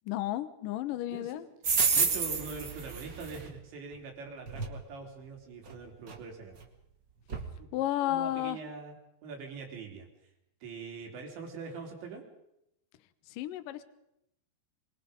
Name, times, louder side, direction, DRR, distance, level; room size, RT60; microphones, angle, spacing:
voice 1, 0.1-1.5 7.7-8.6 13.3-13.8, left 13 dB, 70° left, 12 dB, 2.2 m, -32 dB
sound 1, 1.6-3.5 4.5-4.7 5.7-5.8 6.1-6.2 6.6-6.7 7.3-7.5, right 5 dB, 40° right, 1.8 m, -29 dB
voice 2, 1.9-6.6 7.6-9.0 9.2-10.1 10.6-12.2, right 4 dB, 90° right, 1 dB, 6.2 m, -43 dB
26.0 x 22.5 x 5.3 m, 0.82 s
omnidirectional pair, 5.0 m